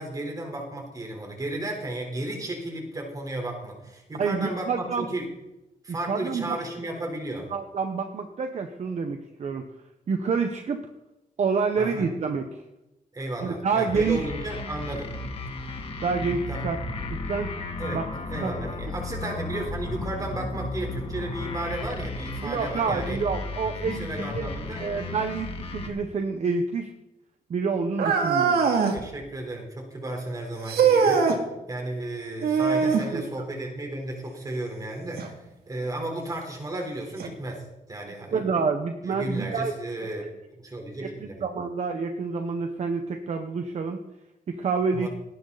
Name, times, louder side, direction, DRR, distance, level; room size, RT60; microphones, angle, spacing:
voice 1, 0.0-5.3 5.8-7.5 11.8-12.1 13.1-15.1 16.5-16.7 17.8-18.0 18.3-23.2 23.8-24.9 28.9-35.3 35.7-38.4 39.0-40.3 40.6-41.4 44.9-45.1, right 1 dB, 20° right, 2 dB, 4.4 m, -34 dB
voice 2, 4.2-5.1 6.1-6.6 7.5-9.6 10.1-10.8 11.4-12.4 13.4-14.2 16.0-16.8 17.1-17.5 17.9-18.0 18.4-18.5 22.4-24.5 24.8-26.9 27.5-28.6 32.9-33.2 38.3-39.7 40.0-40.3 41.2-44.0 44.5-45.1, right 5 dB, 45° right, 5 dB, 1.3 m, -28 dB
sound 1, 13.9-25.9, left 2 dB, 35° left, 2.6 m, -34 dB
sound 2, 28.0-29.0 30.7-31.4 32.4-33.1 35.2-35.3 36.1-36.2 37.2-37.3, right 5 dB, 80° right, 2.9 m, -21 dB
19.0 x 17.5 x 4.3 m, 0.95 s
wide cardioid pair, 165°, 16 cm